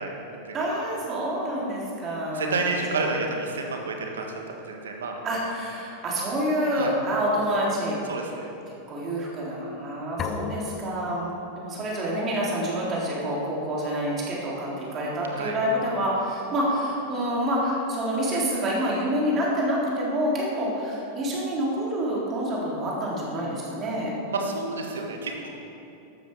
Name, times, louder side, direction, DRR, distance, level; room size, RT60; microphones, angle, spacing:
voice 1, 0.0-0.6 2.3-5.2 6.7-6.9 8.1-8.4 15.3-15.5 24.3-25.5, right 3 dB, 70° right, 2 dB, 1.9 m, -30 dB
voice 2, 0.5-3.1 5.2-8.0 8.9-24.1, equal, 30° right, -5 dB, 3.8 m, -27 dB
sound 1, 10.2-12.0, left 6 dB, 30° left, 0.9 m, -35 dB
14.0 x 12.5 x 4.9 m, 2.9 s
figure-of-eight pair, 90°, 0 cm